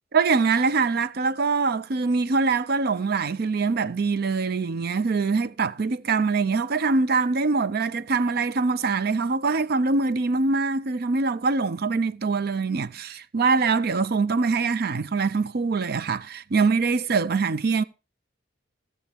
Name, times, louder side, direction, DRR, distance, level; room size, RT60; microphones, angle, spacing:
voice 1, 0.1-17.8, right 4 dB, 55° right, 0.5 m, -23 dB
15.0 x 7.1 x 3.5 m
head